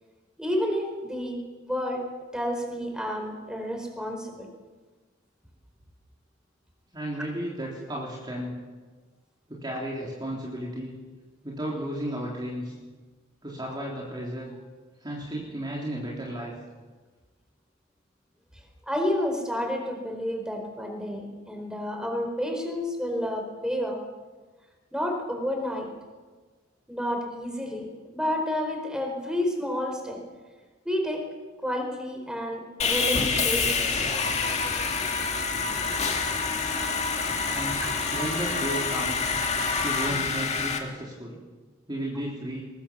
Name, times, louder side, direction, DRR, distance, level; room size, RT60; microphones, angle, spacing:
voice 1, 0.4-2.0 2.3-4.5 18.9-24.0 24.9-25.9 26.9-30.2 30.8-31.2 31.6-33.8 37.7-37.9, left 1 dB, 5° right, 2 dB, 4.3 m, -30 dB
voice 2, 6.9-8.6 9.5-11.0 11.4-12.7 13.4-14.5 15.0-16.5 37.5-37.8 38.1-39.3 39.8-41.4 41.9-42.6, right 1 dB, 20° right, -3 dB, 3.4 m, -33 dB
Sawing, 32.8-40.8, left 4 dB, 35° left, 2.2 m, -27 dB
22.0 x 20.0 x 7.4 m, 1.4 s
head